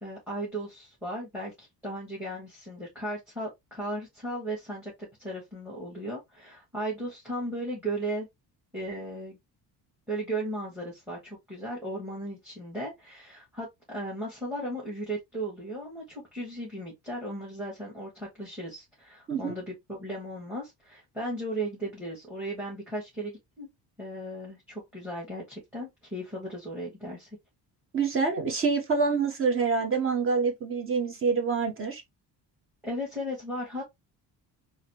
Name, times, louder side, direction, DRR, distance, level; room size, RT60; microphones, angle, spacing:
voice 1, 0.0-4.9 5.2-8.3 8.7-9.4 10.1-23.7 24.0-27.3 32.8-33.8, right 1 dB, 5° right, 1.7 m, -36 dB
voice 2, 27.9-32.0, right 5 dB, 30° right, 1.2 m, -26 dB
4.1 x 2.8 x 3.0 m
cardioid pair, 160°, 41 cm